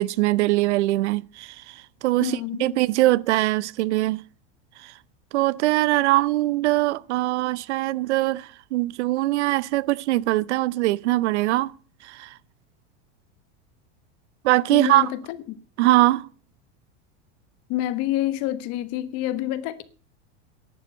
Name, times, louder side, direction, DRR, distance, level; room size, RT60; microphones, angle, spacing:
voice 1, 0.0-4.2 4.8-4.9 5.3-11.7 12.0-12.3 14.4-15.1 15.8-16.3, right 18 dB, 80° right, 0.7 m, -22 dB
voice 2, 2.2-2.8 14.7-15.6 17.7-19.8, left 14 dB, 45° left, 1.3 m, -28 dB
11.0 x 9.1 x 7.9 m
supercardioid pair, 145°, 34 cm